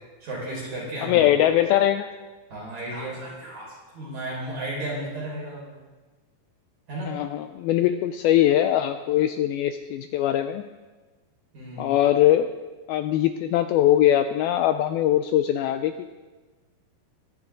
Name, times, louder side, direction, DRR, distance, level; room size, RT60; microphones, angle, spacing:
voice 1, 0.2-1.2 2.5-5.8 6.9-7.1 11.5-11.9, right 1 dB, 45° right, -5 dB, 6.3 m, -34 dB
voice 2, 1.0-2.1 7.1-10.6 11.8-12.5 12.9-16.1, left 12 dB, 80° left, 8 dB, 2.2 m, -21 dB
22.0 x 10.5 x 3.8 m, 1.3 s
omnidirectional pair, 4.7 m